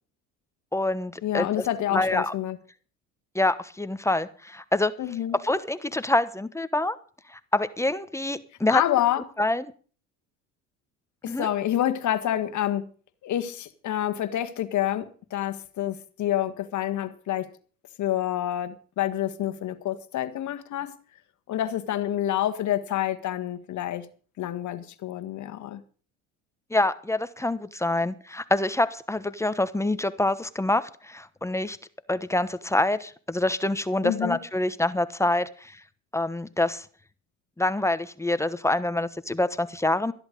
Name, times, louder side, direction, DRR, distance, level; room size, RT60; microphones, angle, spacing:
voice 1, 0.7-1.7 1.9-2.3 3.3-4.9 5.4-7.0 7.3-8.8 9.4-9.7 11.3-11.5 26.7-31.8 32.1-35.8 36.1-36.9 37.6-40.1, left 2 dB, 10° left, 1.1 m, -26 dB
voice 2, 1.2-2.6 5.0-5.4 8.7-9.2 11.2-12.9 13.2-17.5 18.0-20.9 21.5-24.1 24.4-25.8 34.0-34.4, left 12 dB, 55° left, 1.6 m, -28 dB
13.5 x 11.0 x 5.2 m
supercardioid pair, 85°, 36 cm